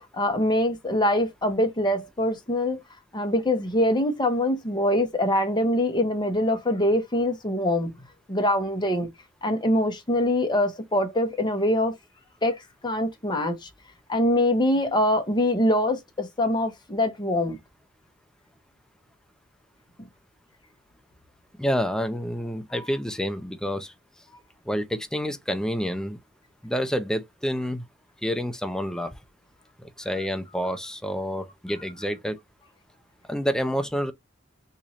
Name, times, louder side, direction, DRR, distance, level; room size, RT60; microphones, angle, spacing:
voice 1, 0.0-2.8 3.1-7.9 8.3-9.1 9.4-11.9 12.4-13.7 14.1-17.6 20.0-20.1 22.7-22.8, left 1 dB, 20° left, 0.8 m, -24 dB
voice 2, 21.6-23.9 24.7-26.2 26.6-27.8 28.2-29.2 29.8-32.4 33.3-34.1, equal, 5° left, 0.4 m, -28 dB
3.0 x 2.5 x 4.1 m
head